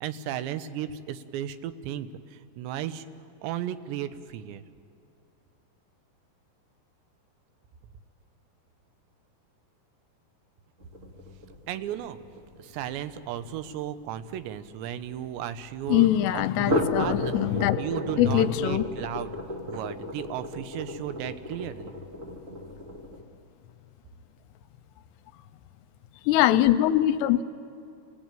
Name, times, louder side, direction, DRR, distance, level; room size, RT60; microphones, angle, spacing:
voice 1, 0.0-3.1 3.4-4.6 11.7-12.2 12.6-17.3 17.8-19.3 19.7-21.9, right 11 dB, 90° right, 12 dB, 3.2 m, -35 dB
sound 1, 10.8-15.4 16.5-23.2, left 1 dB, 30° right, 1.4 m, -34 dB
voice 2, 15.9-17.8 18.2-18.8 26.3-27.4, left 12 dB, 80° left, 12 dB, 2.8 m, -22 dB
27.5 x 19.0 x 9.0 m, 2.5 s
omnidirectional pair, 4.9 m